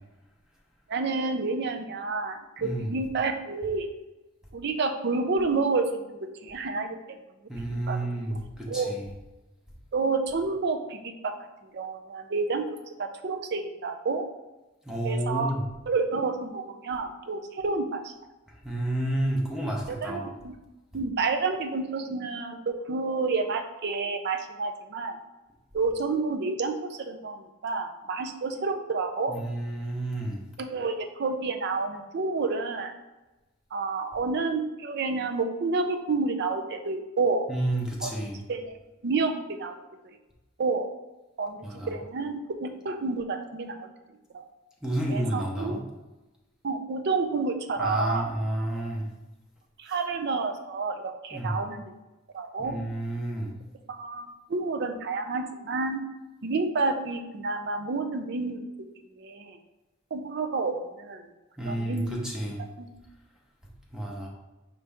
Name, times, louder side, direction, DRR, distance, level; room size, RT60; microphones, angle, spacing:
voice 1, 0.9-3.9 4.5-7.2 7.7-8.0 8.7-8.9 9.9-11.3 11.6-12.6 13.0-14.3 15.0-15.5 15.9-18.1 20.0-20.5 20.9-25.2 25.7-27.4 27.6-29.3 30.6-32.9 33.7-37.4 38.0-38.1 38.5-38.8 39.0-39.7 40.6-40.9 41.4-41.6 41.9-43.9 44.3-44.4 45.1-45.7 46.6-48.3 49.8-51.8 52.3-52.7 53.9-56.0 56.4-58.6 59.2-59.6 60.1-61.2 61.6-62.1 62.8-62.9, right 3 dB, 55° right, 6 dB, 0.5 m, -29 dB
voice 2, 2.6-2.9 7.5-9.1 14.9-15.6 18.6-20.3 29.3-30.4 37.5-38.4 41.6-41.9 44.8-45.8 47.8-49.0 51.3-51.6 52.6-53.5 61.6-62.6 63.9-64.3, right 1 dB, 5° right, -2 dB, 0.7 m, -30 dB
5.2 x 2.8 x 3.4 m, 1.0 s
head